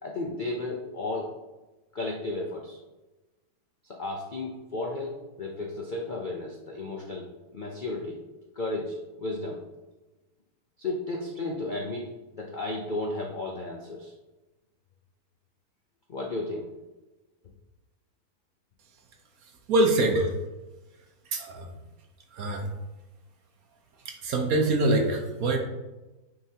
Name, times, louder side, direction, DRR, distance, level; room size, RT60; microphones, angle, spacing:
voice 1, 0.0-1.3 1.9-2.8 3.8-8.2 8.5-9.6 10.8-12.1 12.4-14.1 16.1-16.6 20.1-20.3, left 2 dB, 55° left, -1 dB, 0.5 m, -33 dB
voice 2, 19.7-20.2 21.3-21.7 22.3-22.7 24.1-25.6, right 2 dB, 60° right, 3 dB, 1.2 m, -24 dB
9.5 x 3.9 x 2.8 m, 1.1 s
omnidirectional pair, 1.8 m